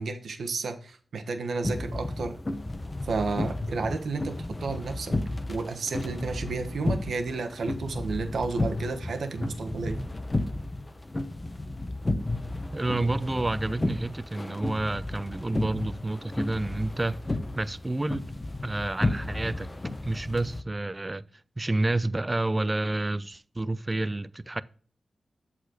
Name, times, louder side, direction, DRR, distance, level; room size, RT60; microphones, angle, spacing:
voice 1, 0.0-2.4 3.0-5.1 5.5-10.0, right 4 dB, 80° right, 1.2 m, -32 dB
sound 1, 1.6-20.6, left 2 dB, 30° left, 0.9 m, -33 dB
voice 2, 12.7-17.2 17.6-18.3 18.6-19.7 20.0-21.2 21.6-24.6, right 2 dB, 25° right, 0.5 m, -29 dB
7.8 x 4.2 x 6.3 m
cardioid pair, 60°, 0 cm